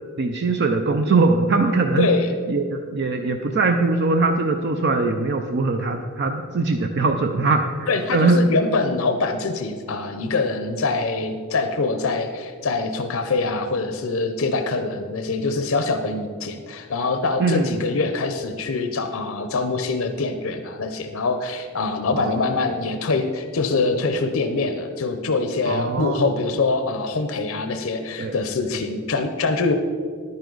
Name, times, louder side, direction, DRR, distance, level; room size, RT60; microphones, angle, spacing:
voice 1, 0.2-2.1 2.5-8.4 17.4-17.8 22.1-22.5 25.7-26.2 28.2-28.3, right 3 dB, 55° right, 5 dB, 0.5 m, -21 dB
voice 2, 2.0-2.3 7.9-29.7, left 3 dB, 70° left, 7 dB, 0.6 m, -24 dB
10.5 x 9.5 x 3.9 m, 2.1 s
head